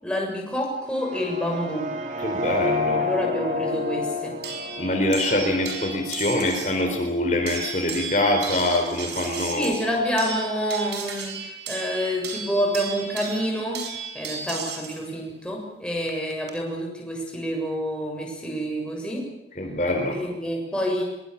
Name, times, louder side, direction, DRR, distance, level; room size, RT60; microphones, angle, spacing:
voice 1, 0.0-1.9 3.0-4.4 9.6-13.8 14.1-19.3 20.1-21.0, equal, 5° left, -1 dB, 7.0 m, -28 dB
sound 1, 0.8-6.8, left 2 dB, 45° right, 2.6 m, -30 dB
voice 2, 2.2-3.1 4.8-9.7 19.6-20.2, left 1 dB, 40° left, 2 dB, 4.2 m, -24 dB
sound 2, 4.4-6.8 7.5-15.0 16.1-16.5, right 6 dB, 80° right, 5.7 m, -35 dB
24.0 x 22.5 x 7.4 m, 0.97 s
head